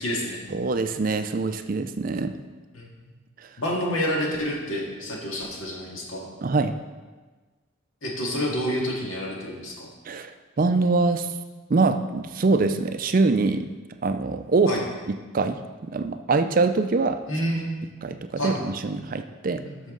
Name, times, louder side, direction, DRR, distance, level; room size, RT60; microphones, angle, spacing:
voice 1, 0.0-0.4 2.7-2.9 3.6-6.3 8.0-9.9 14.7-14.8 17.3-17.8 18.4-18.6 19.6-19.8, equal, 80° left, -2 dB, 2.0 m, -28 dB
voice 2, 0.5-2.3 6.4-6.7 10.1-10.3 10.6-11.3 11.7-13.7 14.0-14.8 15.1-17.2 18.0-19.6, right 3 dB, 40° right, 9 dB, 0.4 m, -24 dB
11.0 x 6.3 x 3.8 m, 1.3 s
head